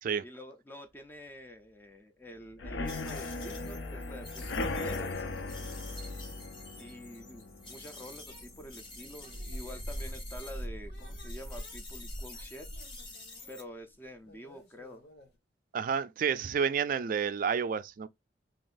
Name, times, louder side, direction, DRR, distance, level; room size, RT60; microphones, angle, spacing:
voice 1, 0.2-5.3 6.8-12.7 13.5-15.0, equal, 10° left, 0.5 m, -48 dB
sound 1, 2.6-10.2 10.6-11.0 11.2-11.3 11.7-11.8, left 3 dB, 75° left, 0.6 m, -39 dB
sound 2, 2.9-10.7 10.9-13.6, left 2 dB, 30° left, 1.2 m, -49 dB
sound 3, 8.3-13.5 14.3-15.3, equal, 60° left, 1.3 m, -43 dB
voice 2, 15.7-18.1, right 7 dB, 50° right, 0.3 m, -30 dB
3.9 x 2.9 x 2.4 m
head